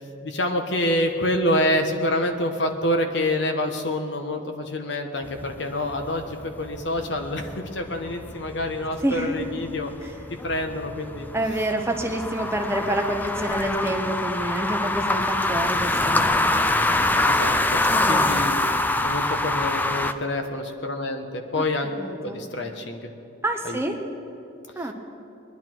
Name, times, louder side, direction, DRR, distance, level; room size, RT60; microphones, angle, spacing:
voice 1, 0.2-9.9 10.4-11.3 17.3-17.8 18.1-18.7 19.0-21.9 22.2-23.0 23.6-23.8, left 1 dB, 60° left, 5 dB, 1.1 m, -27 dB
sound 1, 5.2-20.1, left 2 dB, 10° left, 0.3 m, -25 dB
voice 2, 9.0-9.5 10.0-10.1 11.3-16.4 16.9-17.0 17.9-18.4 21.6-21.7 22.0-22.4 23.4-24.0 24.8-24.9, right 1 dB, 15° right, 3 dB, 0.8 m, -28 dB
21.0 x 10.5 x 4.6 m, 2.7 s
head